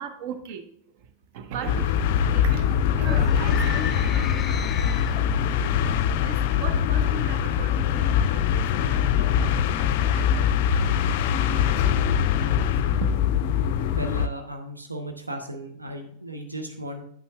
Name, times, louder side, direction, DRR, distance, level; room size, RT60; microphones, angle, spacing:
voice 1, 0.0-4.9 5.4-10.9 11.3-13.1, right 6 dB, 50° right, 8 dB, 0.9 m, -39 dB
sound 1, 1.7-14.3, left 8 dB, 50° left, 0.4 m, -23 dB
sound 2, 2.2-5.9, left 6 dB, 15° left, 0.8 m, -37 dB
voice 2, 14.0-17.0, right 1 dB, 80° right, 5 dB, 0.7 m, -35 dB
9.2 x 8.3 x 2.3 m, 0.67 s
figure-of-eight pair, 90°, 0 cm